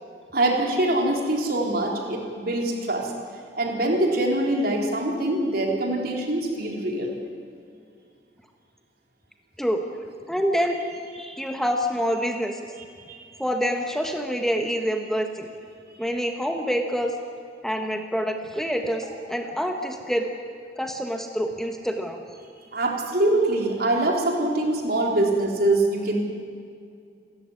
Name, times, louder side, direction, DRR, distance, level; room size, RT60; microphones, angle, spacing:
voice 1, 0.3-3.1 3.5-7.1 13.1-13.2 15.9-16.0 22.7-26.2, right 1 dB, 60° right, 1 dB, 4.2 m, -24 dB
voice 2, 10.3-10.8 11.1-12.7 13.4-15.5 16.0-17.2 17.6-20.3 20.8-22.2, equal, ahead, 3 dB, 1.5 m, -26 dB
29.0 x 14.5 x 9.9 m, 2.3 s
head